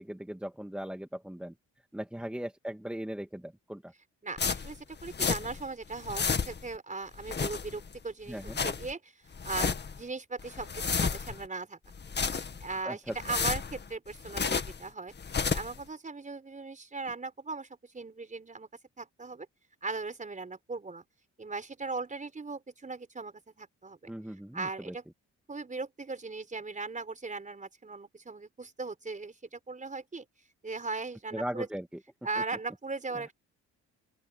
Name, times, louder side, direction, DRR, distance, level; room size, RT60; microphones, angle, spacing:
voice 1, 0.0-1.5 1.9-3.9 8.3-8.6 12.9-13.2 24.1-24.9 31.3-31.9, equal, 5° right, 2.0 m, -38 dB
voice 2, 4.2-11.8 12.3-15.1 15.5-18.7 19.0-19.5 19.8-21.0 21.4-24.1 24.5-25.0 25.5-30.3 30.6-31.7 32.2-33.3, right 3 dB, 25° right, 4.7 m, -38 dB
sound 1, 4.4-5.7 5.9-6.8 7.1-8.0 8.3-8.9 9.3-10.0 10.4-11.5 11.9-12.7 13.1-14.8 15.2-15.8, left 5 dB, 35° left, 2.0 m, -32 dB
open air
cardioid pair, 90°, 30 cm